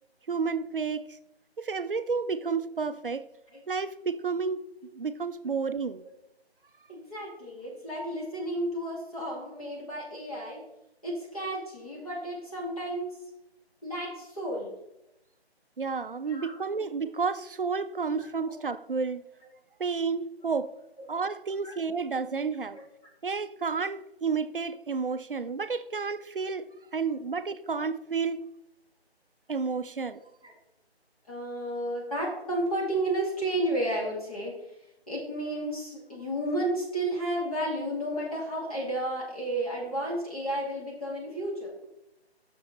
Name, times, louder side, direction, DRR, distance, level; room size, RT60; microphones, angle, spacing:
voice 1, 0.3-1.0 1.6-3.2 3.7-4.6 4.9-6.0 15.8-19.2 19.8-20.7 21.1-22.8 23.2-26.7 26.9-28.4 29.5-30.2, right 5 dB, 55° right, 0.4 m, -31 dB
voice 2, 6.9-10.6 11.0-13.2 13.8-14.7 16.3-16.6 18.2-18.5 21.6-21.7 25.4-25.6 30.4-30.5 31.3-34.5 35.1-41.7, right 1 dB, 35° left, 1.8 m, -32 dB
7.0 x 6.2 x 3.9 m
figure-of-eight pair, 175°, 33 cm